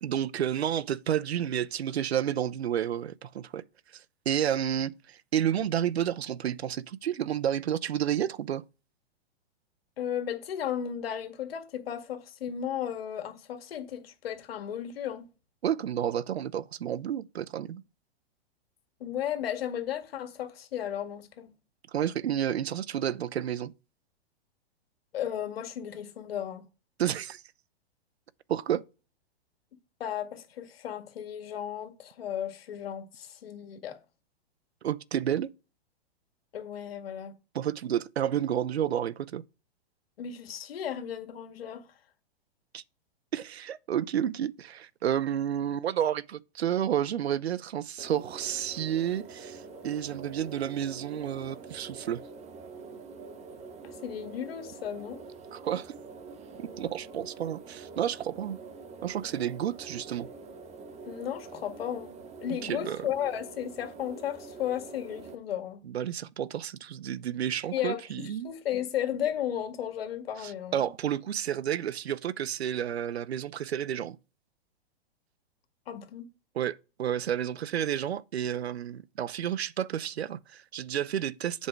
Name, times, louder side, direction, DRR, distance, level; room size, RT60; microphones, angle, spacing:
voice 1, 0.0-3.6 3.9-8.6 15.6-17.8 21.9-23.7 27.0-27.4 28.5-28.8 34.8-35.5 37.5-39.4 42.7-42.8 43.3-52.2 55.5-55.9 56.6-58.6 59.0-60.3 62.6-63.1 65.8-68.5 70.4-74.2 76.5-81.7, right 10 dB, 85° right, 0.7 m, -31 dB
voice 2, 10.0-15.3 19.0-21.5 25.1-26.6 30.0-34.0 36.5-37.3 40.2-41.8 53.8-55.2 61.1-62.1 62.4-65.8 67.7-70.9 75.9-76.3, left 10 dB, 70° left, 2.0 m, -34 dB
sound 1, 48.0-65.3, right 4 dB, 20° right, 1.3 m, -45 dB
7.8 x 5.4 x 4.7 m
hypercardioid pair, 120°, 31 cm